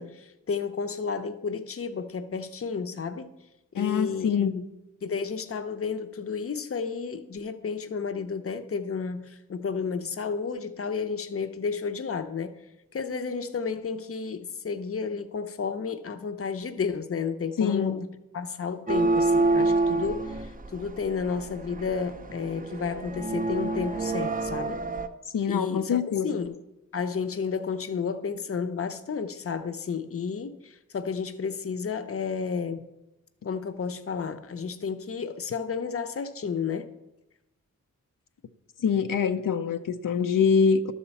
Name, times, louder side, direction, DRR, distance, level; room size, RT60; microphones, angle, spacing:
voice 1, 0.0-3.3 3.7-4.7 5.0-12.5 12.9-24.8 25.5-26.6 26.9-32.9 33.4-36.9, left 5 dB, 45° left, 0.6 m, -32 dB
voice 2, 3.7-4.6 17.6-17.9 25.3-26.4 38.8-40.9, left 6 dB, 85° left, 0.6 m, -24 dB
sound 1, 18.9-25.1, right 3 dB, 25° right, 0.5 m, -27 dB
12.0 x 4.3 x 7.0 m
wide cardioid pair, 110°, 32 cm